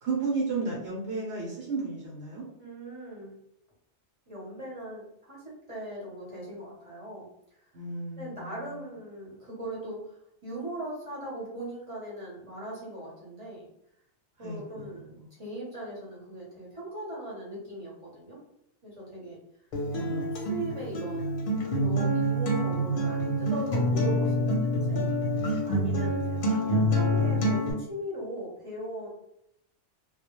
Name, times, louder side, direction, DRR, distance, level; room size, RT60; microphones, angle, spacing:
voice 1, 0.0-2.5 7.7-8.5 14.4-14.9 19.9-20.5, right 3 dB, 65° right, -4 dB, 0.9 m, -33 dB
voice 2, 2.6-3.3 4.3-7.3 8.2-13.6 14.4-18.4 18.8-19.4 19.9-21.5 21.8-25.0 25.6-29.1, right 1 dB, 30° right, -6 dB, 0.8 m, -39 dB
Acoustic guitar, 19.7-27.7, equal, 60° left, 0.7 m, -27 dB
2.2 x 2.0 x 2.9 m, 0.76 s
omnidirectional pair, 1.2 m